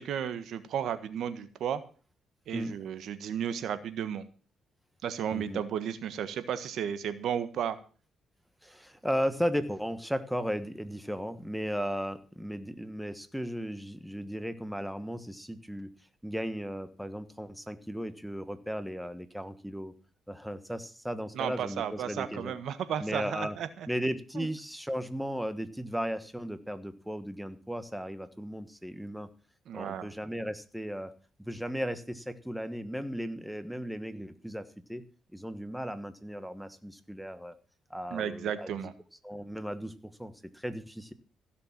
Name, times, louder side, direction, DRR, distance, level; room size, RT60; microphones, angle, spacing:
voice 1, 0.0-1.8 2.5-4.2 5.0-7.8 21.3-23.9 24.3-24.5 29.7-30.1 38.1-38.9, right 9 dB, 75° right, 12 dB, 1.4 m, -33 dB
voice 2, 5.3-5.6 8.6-15.9 16.2-19.9 20.3-22.5 23.0-23.6 23.9-29.3 29.7-31.1 31.5-34.6 34.9-35.0 35.3-37.6 37.9-38.7 39.2-41.1, equal, ahead, 11 dB, 1.4 m, -35 dB
16.0 x 6.9 x 7.5 m, 0.38 s
cardioid pair, 90°, 0 cm